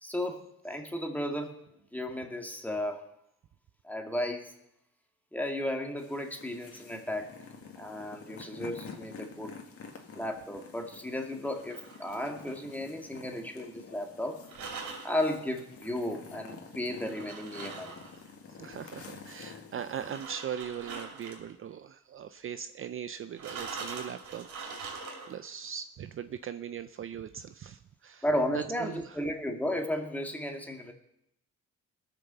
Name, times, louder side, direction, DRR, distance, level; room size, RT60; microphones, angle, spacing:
voice 1, 0.0-1.6 1.9-3.0 3.8-4.5 5.3-7.3 7.8-9.6 10.2-14.4 15.0-18.0 28.2-30.9, left 1 dB, 5° left, 3 dB, 2.2 m, -34 dB
sound 1, 6.0-20.2, left 5 dB, 50° left, 2.0 m, -49 dB
sound 2, 11.5-12.9 14.4-15.2 17.0-18.3 19.9-21.5 23.4-25.5, right 4 dB, 75° right, 3.7 m, -43 dB
voice 2, 18.5-25.0 25.2-28.3 28.5-29.2, right 8 dB, 45° right, 12 dB, 0.5 m, -40 dB
19.5 x 6.9 x 6.9 m, 0.80 s
cardioid pair, 90°, 30 cm